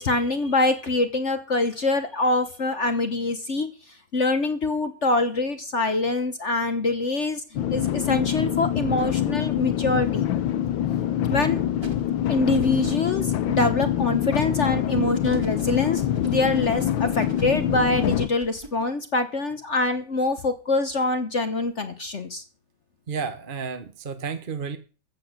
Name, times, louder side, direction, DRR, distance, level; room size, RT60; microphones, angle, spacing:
voice 1, 0.0-3.7 4.1-7.4 7.7-10.3 11.3-11.6 12.3-22.4, left 2 dB, 45° left, 9 dB, 1.2 m, -24 dB
sound 1, 7.6-18.3, left 11 dB, 80° left, 1.6 m, -25 dB
sound 2, 11.8-13.4 15.2-18.8, right 1 dB, 15° right, 2.0 m, -42 dB
voice 2, 23.1-24.8, right 5 dB, 35° right, 9 dB, 0.9 m, -31 dB
14.5 x 8.3 x 6.6 m, 0.37 s
omnidirectional pair, 2.1 m